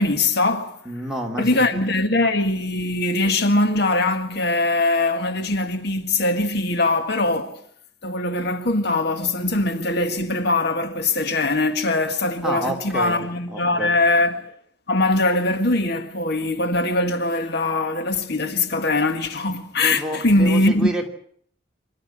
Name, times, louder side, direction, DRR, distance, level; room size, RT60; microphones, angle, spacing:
voice 1, 0.0-0.8 1.4-7.6 8.0-14.5 14.9-20.9, left 2 dB, 55° left, 1.7 m, -21 dB
voice 2, 0.8-1.8 12.4-13.2 13.5-13.9 19.8-21.1, right 1 dB, 5° right, 3.0 m, -29 dB
26.0 x 12.5 x 9.9 m
head